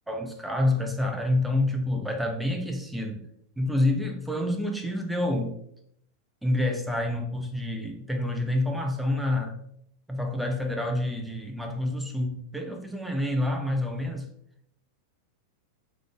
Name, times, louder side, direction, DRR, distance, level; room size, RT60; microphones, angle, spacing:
voice 1, 0.1-3.3 3.6-5.6 6.4-9.6 10.1-14.3, left 1 dB, 5° right, 3 dB, 0.6 m, -28 dB
3.6 x 3.4 x 3.4 m, 0.71 s
figure-of-eight pair, 90°, 0 cm